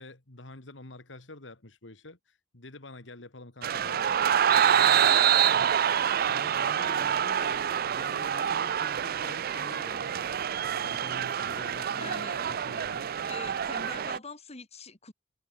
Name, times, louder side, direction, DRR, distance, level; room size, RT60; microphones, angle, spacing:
voice 1, 0.0-4.1 4.5-5.2 5.5-6.0 6.3-10.2 10.7-13.3, left 2 dB, 75° left, 2.4 m, -47 dB
sound 1, 3.6-14.2, right 9 dB, 55° right, 0.5 m, -26 dB
voice 2, 11.9-12.4 13.3-15.1, left 3 dB, 35° left, 2.9 m, -43 dB
head